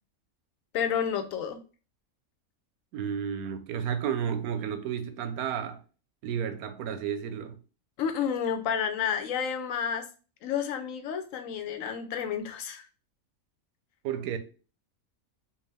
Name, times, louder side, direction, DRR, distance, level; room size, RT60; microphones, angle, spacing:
voice 1, 0.7-1.6 8.0-10.1 10.4-12.9, left 7 dB, 70° left, 0.9 m, -30 dB
voice 2, 2.9-5.8 6.2-7.6 14.0-14.4, right 8 dB, 90° right, 1.1 m, -32 dB
4.6 x 2.4 x 3.3 m
omnidirectional pair, 1.5 m